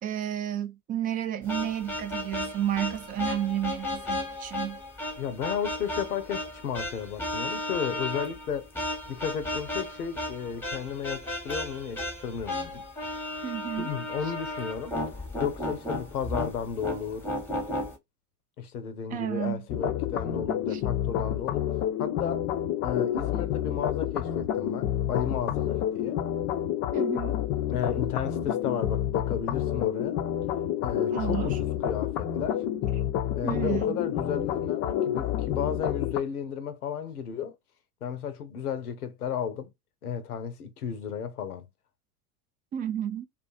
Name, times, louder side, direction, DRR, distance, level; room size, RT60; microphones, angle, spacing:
voice 1, 0.0-4.8 13.4-13.9 19.1-19.6 20.7-20.8 26.9-27.4 31.1-31.6 33.4-34.0 42.7-43.3, right 11 dB, 20° right, 0.3 m, -31 dB
sound 1, 1.5-18.0, left 1 dB, 5° left, 1.0 m, -34 dB
voice 2, 5.2-8.7 9.1-12.8 13.8-15.0 15.4-17.3 18.6-21.7 22.0-22.5 22.8-26.2 27.7-30.2 30.8-32.6 33.3-37.6 38.0-39.7 40.0-41.7, left 7 dB, 85° left, 0.7 m, -33 dB
sound 2, 19.7-36.2, left 11 dB, 35° left, 0.5 m, -29 dB
2.4 x 2.4 x 2.4 m
figure-of-eight pair, 75°, 44 cm